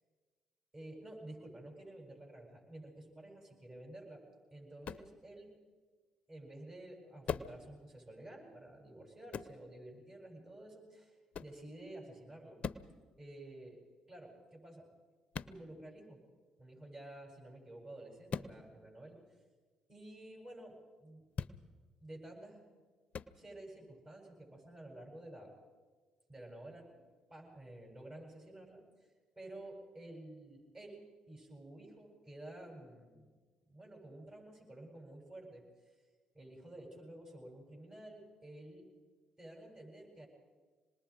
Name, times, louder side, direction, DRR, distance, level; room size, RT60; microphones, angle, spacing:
voice 1, 0.7-4.2 4.5-5.5 6.3-12.6 13.2-13.8 14.1-14.9 15.4-16.2 16.6-19.2 19.9-21.3 22.0-22.6 23.3-25.6 26.3-29.1 29.4-33.4 33.7-35.9 36.3-38.9 39.4-40.3, right 1 dB, 30° right, -1 dB, 8.0 m, -51 dB
sound 1, 4.8-5.1 7.2-7.6 9.3-9.6 11.3-11.6 12.6-12.9 15.3-15.6 18.3-18.5 21.3-21.6 23.1-23.3, left 6 dB, 55° left, 0.7 m, -40 dB
26.5 x 20.0 x 5.1 m, 1.4 s
hypercardioid pair, 50°, 2 cm